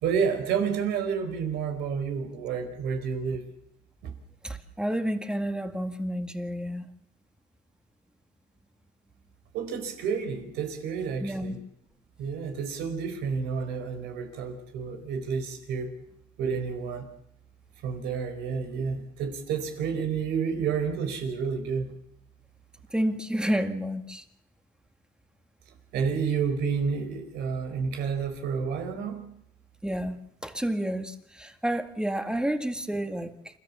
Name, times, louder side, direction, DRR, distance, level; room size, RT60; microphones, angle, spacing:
voice 1, 0.0-3.4 4.0-4.1 9.5-11.6 12.2-15.9 16.4-17.1 17.8-21.9 25.9-29.2, right 6 dB, 85° right, 6 dB, 4.6 m, -30 dB
voice 2, 4.4-6.9 11.2-11.5 22.9-24.2 29.8-30.2 30.4-33.3, equal, 5° right, 7 dB, 1.9 m, -30 dB
28.5 x 14.0 x 7.3 m, 0.78 s
cardioid pair, 110°, 17 cm